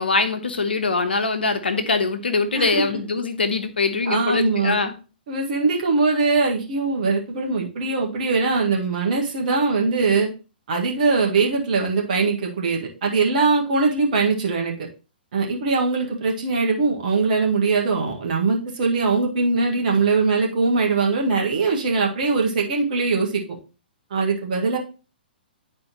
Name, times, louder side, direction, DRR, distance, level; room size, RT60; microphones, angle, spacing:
voice 1, 0.0-4.9, left 4 dB, 75° left, 1.1 m, -23 dB
voice 2, 4.1-4.8 5.3-10.3 10.7-14.7 15.3-23.4 24.1-24.8, right 4 dB, 50° right, 1.8 m, -21 dB
9.7 x 4.3 x 3.0 m
figure-of-eight pair, 120°, 6 cm